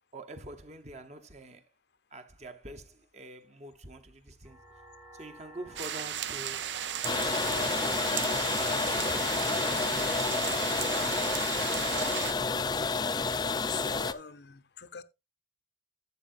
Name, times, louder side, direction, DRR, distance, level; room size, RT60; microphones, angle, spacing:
voice 1, 0.1-1.7 2.1-4.6 5.1-6.7 7.1-10.2, right 1 dB, 35° right, 1.0 m, -46 dB
sound 1, 4.4-12.6, right 1 dB, 5° right, 0.9 m, -53 dB
sound 2, 5.8-12.3, right 9 dB, 70° right, 0.6 m, -35 dB
sound 3, 7.0-14.1, left 4 dB, 20° left, 0.4 m, -30 dB
voice 2, 12.6-12.9 13.7-15.0, left 6 dB, 60° left, 0.7 m, -43 dB
12.0 x 7.9 x 2.6 m
head